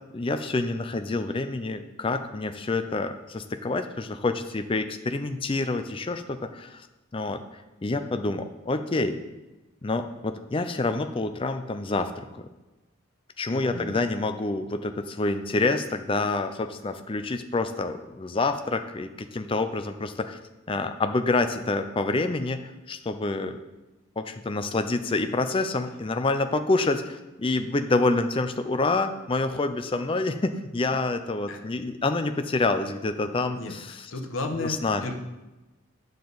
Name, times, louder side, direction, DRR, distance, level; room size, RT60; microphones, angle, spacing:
voice 1, 0.1-6.9 7.1-7.4 7.8-9.2 9.8-12.5 13.4-20.4 20.7-23.6 24.2-34.1 34.6-35.1, left 3 dB, 25° left, 8 dB, 0.5 m, -27 dB
voice 2, 13.5-14.0 31.5-31.6 33.5-33.7 34.1-35.1, left 2 dB, 70° left, 5 dB, 1.0 m, -33 dB
9.0 x 6.6 x 4.0 m, 1.1 s
head